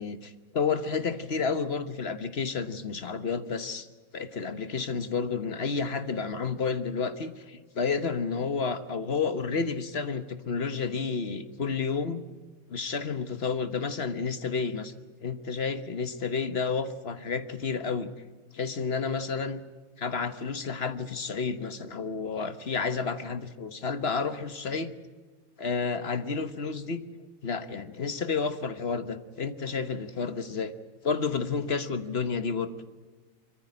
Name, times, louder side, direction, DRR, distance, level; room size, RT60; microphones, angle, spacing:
voice 1, 0.0-3.9 4.1-12.2 12.7-14.9 15.2-18.1 18.5-19.6 20.0-24.9 25.6-27.0 27.4-30.7 31.0-32.7, left 5 dB, 45° left, 11 dB, 1.3 m, -31 dB
25.5 x 14.5 x 9.8 m, 1.4 s
omnidirectional pair, 1.5 m